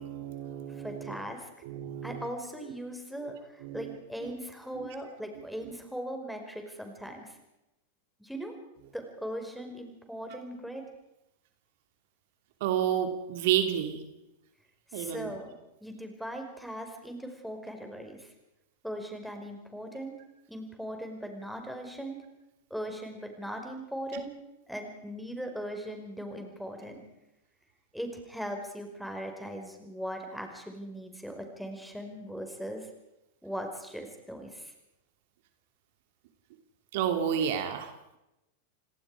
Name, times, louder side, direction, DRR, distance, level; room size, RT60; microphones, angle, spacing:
voice 1, 0.0-1.2 1.6-2.2 3.2-3.3 3.6-3.9 12.6-14.0 14.9-15.3 24.1-24.2 36.9-37.9, right 9 dB, 60° right, 7 dB, 2.7 m, -30 dB
voice 2, 0.7-1.5 2.0-7.4 8.2-8.5 8.9-10.9 14.9-15.5 15.8-18.3 18.8-20.1 20.5-22.2 22.7-24.3 24.7-27.0 27.9-32.9 33.4-34.7, equal, ahead, 4 dB, 5.1 m, -39 dB
28.0 x 19.0 x 4.9 m, 0.92 s
hypercardioid pair, 100°, 0 cm